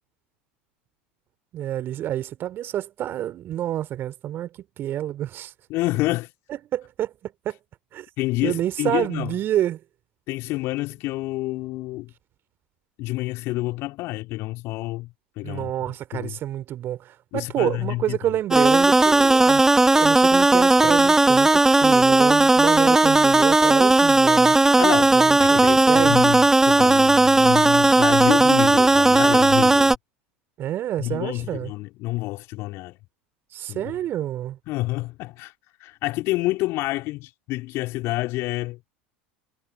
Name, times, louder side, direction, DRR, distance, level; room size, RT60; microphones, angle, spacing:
voice 1, 1.5-4.5 4.8-5.5 6.7-7.6 7.9-8.1 8.4-9.8 15.4-19.6 19.9-24.6 25.1-26.3 30.6-31.7 33.5-34.6, right 12 dB, 40° right, 2.9 m, -28 dB
voice 2, 5.7-6.3 8.2-9.3 10.3-12.1 13.0-15.7 16.1-16.4 17.3-18.2 20.8-21.1 24.8-29.9 31.0-33.0 33.7-33.9 34.7-35.5 35.8-38.8, left 19 dB, 50° left, 2.2 m, -28 dB
sound 1, 18.5-30.0, right 2 dB, 10° right, 1.1 m, -16 dB
figure-of-eight pair, 80°, 6 cm